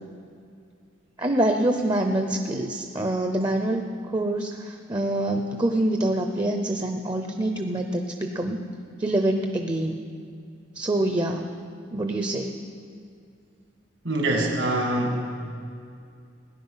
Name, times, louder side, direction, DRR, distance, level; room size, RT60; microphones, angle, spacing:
voice 1, 1.2-8.6 9.0-10.0 10.7-11.5 11.9-12.5, right 1 dB, 20° right, 5 dB, 0.7 m, -25 dB
voice 2, 14.0-15.4, right 1 dB, 70° right, 1 dB, 2.2 m, -25 dB
17.5 x 10.5 x 5.7 m, 2.4 s
head